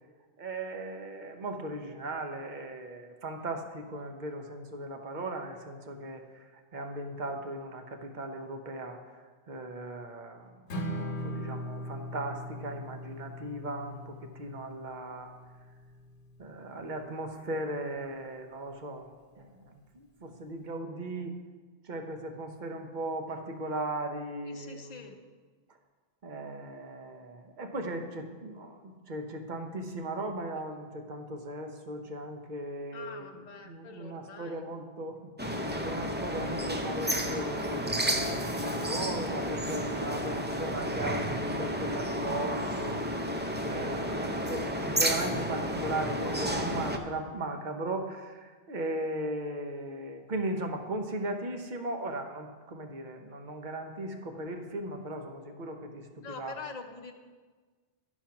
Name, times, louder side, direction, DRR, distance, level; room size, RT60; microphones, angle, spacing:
voice 1, 0.4-6.4 6.7-9.0 9.5-15.3 16.4-19.1 19.4-21.4 21.8-25.0 26.2-35.3 35.8-43.0 43.6-56.6, right 1 dB, 45° right, 4 dB, 1.0 m, -37 dB
Strum, 10.7-17.0, equal, 85° left, 1.2 m, -40 dB
voice 2, 24.5-25.2 32.9-34.7 36.3-36.7 39.9-40.4 56.2-57.1, left 4 dB, 45° left, 5 dB, 0.8 m, -45 dB
sound 1, 35.4-47.0, equal, 15° right, 0.4 m, -31 dB
11.5 x 4.5 x 5.7 m, 1.4 s
omnidirectional pair, 1.1 m